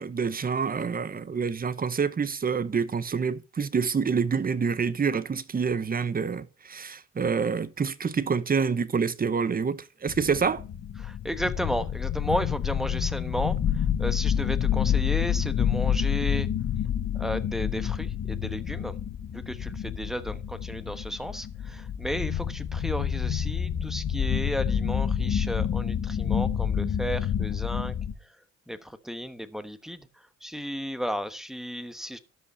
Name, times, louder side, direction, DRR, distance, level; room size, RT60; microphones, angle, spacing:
voice 1, 0.0-10.6, right 5 dB, 30° right, 1.0 m, -27 dB
sound 1, 10.1-28.1, left 8 dB, 50° left, 1.4 m, -28 dB
voice 2, 11.0-13.6 14.0-16.5 17.2-19.0 19.3-27.9 28.7-30.0 30.4-32.2, equal, ahead, 1.1 m, -33 dB
12.5 x 5.7 x 5.4 m
cardioid pair, 90°, 30 cm